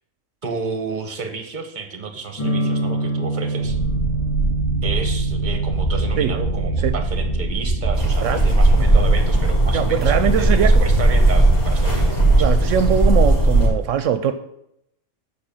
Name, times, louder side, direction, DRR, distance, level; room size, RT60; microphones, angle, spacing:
voice 1, 0.4-3.8 4.8-13.1, right 4 dB, 40° right, 6 dB, 1.2 m, -31 dB
sound 1, 2.4-12.2, right 2 dB, 25° left, 2.3 m, -28 dB
sound 2, 3.6-12.3, right 2 dB, 80° left, 2.1 m, -24 dB
sound 3, 7.9-13.7, right 1 dB, 45° left, 2.5 m, -17 dB
voice 2, 9.7-10.8 12.4-14.3, right 8 dB, 80° right, 10 dB, 0.9 m, -21 dB
7.7 x 4.6 x 7.0 m, 0.78 s
omnidirectional pair, 1.3 m